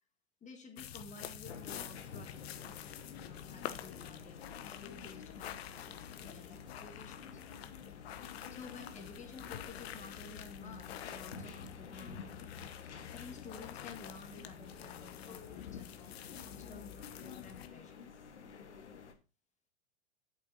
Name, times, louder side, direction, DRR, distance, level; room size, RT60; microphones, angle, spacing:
voice 1, 0.4-2.9 3.2-7.4 8.5-12.5 13.1-18.0, left 4 dB, 20° left, 4 dB, 1.8 m, -53 dB
sound 1, 0.8-17.7, left 10 dB, 65° left, 1.1 m, -48 dB
sound 2, 1.5-19.1, left 5 dB, 80° left, 1.7 m, -51 dB
11.0 x 8.3 x 2.8 m, 0.31 s
hypercardioid pair, 105°, 34 cm